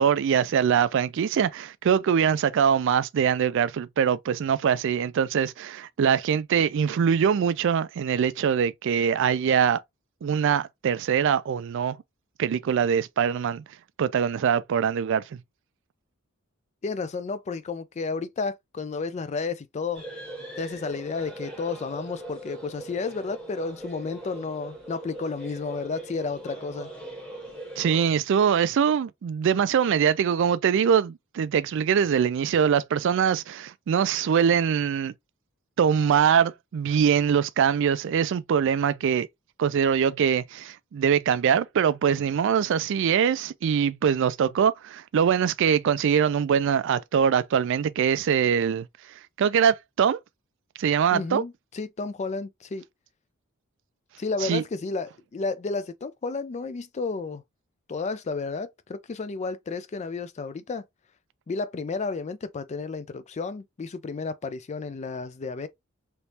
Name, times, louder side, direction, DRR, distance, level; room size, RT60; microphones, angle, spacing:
voice 1, 0.0-9.8 10.2-12.0 12.4-13.6 14.0-15.2 27.8-35.1 35.8-39.3 39.6-48.9 49.4-50.2 50.8-51.4 54.4-54.6, right 7 dB, 60° right, 0.3 m, -23 dB
voice 2, 16.8-20.0 20.6-26.9 51.1-52.8 54.2-57.4 57.9-60.8 61.5-65.7, left 4 dB, 30° left, 0.3 m, -32 dB
sound 1, 19.9-28.0, right 1 dB, 5° left, 1.1 m, -40 dB
3.3 x 3.0 x 2.8 m
head